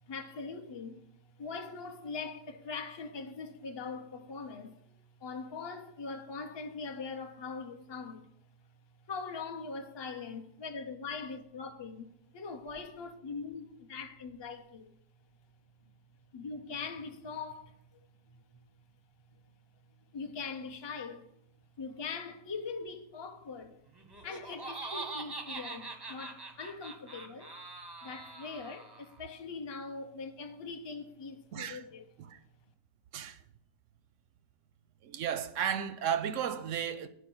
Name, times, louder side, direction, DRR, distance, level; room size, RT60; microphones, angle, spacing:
voice 1, 0.1-1.0 1.4-4.8 5.2-8.3 9.1-15.0 16.3-17.7 18.3-18.4 20.1-21.3 21.8-23.8 24.2-27.5 28.0-32.0, left 4 dB, 30° left, 0.4 m, -41 dB
Laughter, 23.9-29.2, right 3 dB, 25° right, 0.6 m, -43 dB
voice 2, 31.5-31.8 32.2-32.4 33.1-33.4 35.0-37.1, right 8 dB, 70° right, 0.8 m, -34 dB
10.0 x 4.9 x 6.2 m
omnidirectional pair, 1.6 m